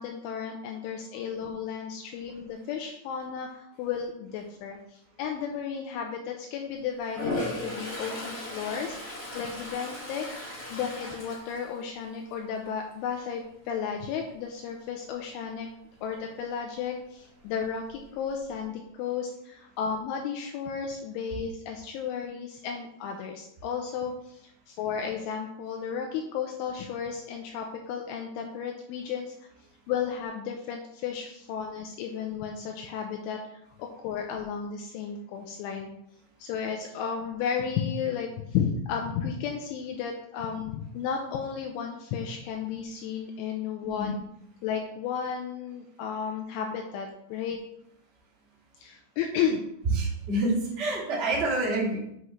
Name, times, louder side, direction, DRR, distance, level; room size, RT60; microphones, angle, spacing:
voice 1, 0.0-10.3 10.7-15.7 16.0-29.4 29.9-33.4 33.8-35.9 36.4-44.2 44.6-47.6 48.8-49.6, left 7 dB, 80° left, 2 dB, 2.9 m, -33 dB
Toilet flush, 7.0-12.2 12.6-13.0 17.5-17.6 17.9-18.6, left 2 dB, 30° left, 2.2 m, -36 dB
voice 2, 49.8-52.0, right 2 dB, 60° right, -6 dB, 0.6 m, -27 dB
7.9 x 6.4 x 3.1 m, 0.78 s
omnidirectional pair, 5.8 m